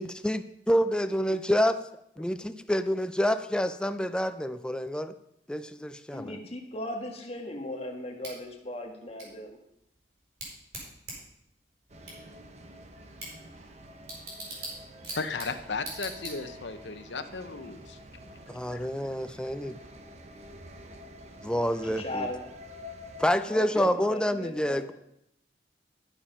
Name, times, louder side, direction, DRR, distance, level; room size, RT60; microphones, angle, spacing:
voice 1, 0.0-5.1 5.5-6.4 18.5-19.8 21.4-22.3 23.2-24.9, equal, 5° left, 11 dB, 0.4 m, -28 dB
voice 2, 6.1-9.6 21.8-22.5 23.5-24.9, left 1 dB, 35° left, 3 dB, 1.6 m, -37 dB
Bicycle / Tick, 8.2-16.8, right 2 dB, 70° right, 5.0 m, -44 dB
sound 1, 11.9-23.3, equal, 40° right, 0.9 m, -48 dB
voice 3, 15.1-18.0 18.7-18.9, left 4 dB, 80° left, 9 dB, 0.8 m, -35 dB
11.5 x 7.1 x 5.5 m, 0.79 s
head